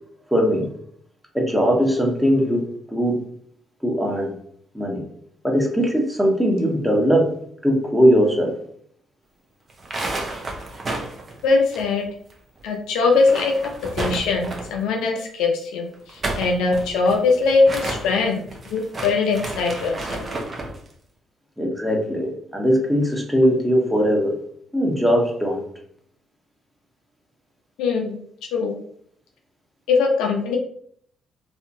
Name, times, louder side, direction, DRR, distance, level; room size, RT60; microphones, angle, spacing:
voice 1, 0.3-0.7 1.3-2.6 2.9-3.2 3.8-4.3 4.7-5.0 5.4-7.3 7.6-8.5 21.6-24.3 24.7-25.6, equal, 5° right, 0 dB, 1.0 m, -20 dB
sound 1, 9.7-12.3 12.6-12.7 13.1-14.8 15.9-20.8, right 2 dB, 40° right, 0.7 m, -31 dB
voice 2, 11.4-12.1 12.6-13.5 14.0-18.4 18.7-20.2 27.8-28.2 28.5-28.8 29.9-30.6, left 4 dB, 75° left, 1 dB, 0.5 m, -21 dB
2.7 x 2.4 x 2.6 m, 0.62 s
hypercardioid pair, 50°, 0 cm